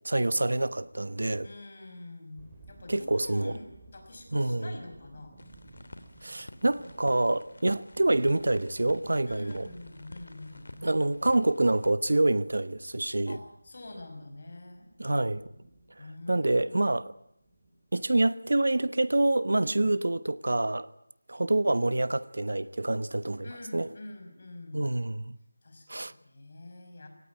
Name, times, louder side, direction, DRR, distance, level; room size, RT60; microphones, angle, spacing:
voice 1, 0.0-1.5 2.9-3.6 4.3-4.8 6.2-9.7 10.8-13.4 15.0-15.4 16.3-17.1 17.9-20.9 21.3-23.9 24.7-25.3 25.9-26.1, right 2 dB, 65° right, 1.1 m, -27 dB
voice 2, 1.4-5.4 9.3-10.9 13.3-14.9 16.0-17.0 19.6-19.9 23.4-24.9 25.6-27.1, left 2 dB, 30° left, 5.4 m, -46 dB
sound 1, 2.3-18.1, right 2 dB, 10° right, 3.2 m, -56 dB
sound 2, 5.4-11.9, left 2 dB, 65° left, 3.1 m, -51 dB
25.5 x 18.0 x 9.2 m
figure-of-eight pair, 180°, 0 cm